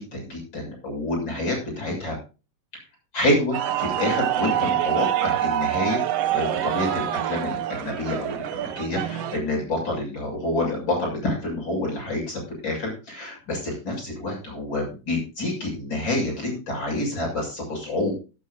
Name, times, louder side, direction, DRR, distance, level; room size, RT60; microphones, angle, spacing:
voice 1, 0.0-2.2 3.1-6.0 6.3-18.1, left 1 dB, 30° left, -1 dB, 7.5 m, -28 dB
sound 1, 3.5-9.4, right 12 dB, 70° right, 1.5 m, -26 dB
16.0 x 12.0 x 2.7 m, 0.32 s
omnidirectional pair, 3.9 m